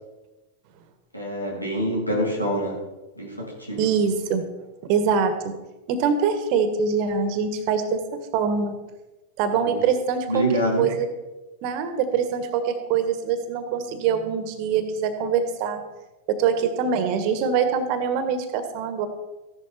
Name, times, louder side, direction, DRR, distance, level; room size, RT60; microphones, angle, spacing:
voice 1, 1.1-2.8 3.1-3.9 9.5-9.8 10.3-11.0, right 1 dB, 90° left, -3 dB, 4.0 m, -26 dB
voice 2, 3.8-4.4 4.9-5.6 5.9-8.8 9.4-10.4 10.8-11.1 11.6-15.8 16.3-19.1, right 6 dB, 45° right, 9 dB, 1.7 m, -24 dB
15.0 x 11.5 x 4.5 m, 1.1 s
figure-of-eight pair, 90°, 0 cm